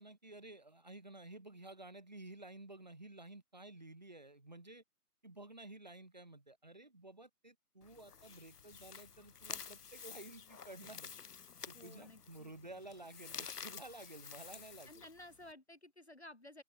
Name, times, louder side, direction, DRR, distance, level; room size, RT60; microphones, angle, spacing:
voice 1, 0.0-4.8 5.2-11.1 11.7-15.0, right 2 dB, 25° right, 3.8 m, -53 dB
sound 1, 7.8-15.5, left 6 dB, 75° left, 0.8 m, -50 dB
voice 2, 11.7-12.5 14.9-16.6, left 1 dB, 45° left, 1.8 m, -55 dB
open air
figure-of-eight pair, 180°, 47 cm